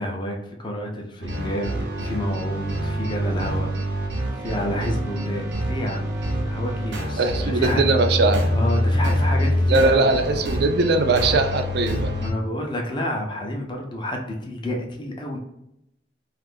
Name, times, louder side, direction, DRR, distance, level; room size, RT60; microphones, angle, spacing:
voice 1, 0.0-3.7 4.4-6.2 6.5-7.8 8.5-10.1 11.1-11.4 12.1-15.4, equal, 25° left, 1 dB, 0.5 m, -29 dB
sound 1, 1.2-12.3, equal, 90° right, 0.7 m, -25 dB
voice 2, 7.2-8.4 9.7-12.1, right 3 dB, 65° right, 7 dB, 0.4 m, -20 dB
2.5 x 2.4 x 3.5 m, 0.80 s
head